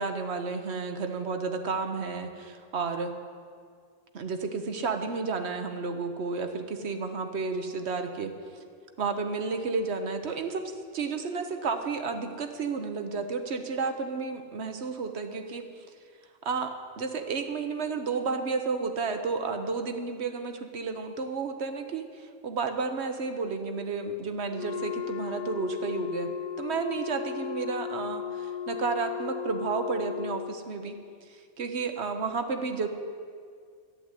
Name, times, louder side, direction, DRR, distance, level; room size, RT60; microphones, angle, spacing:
voice 1, 0.0-3.1 4.1-8.3 9.0-15.8 16.4-31.0 31.3-32.9, right 4 dB, 65° right, 7 dB, 1.2 m, -32 dB
Wind instrument woodwind instrument, 24.5-30.6, left 8 dB, 50° left, 0.5 m, -36 dB
10.5 x 8.0 x 9.6 m, 2.1 s
omnidirectional pair, 1.2 m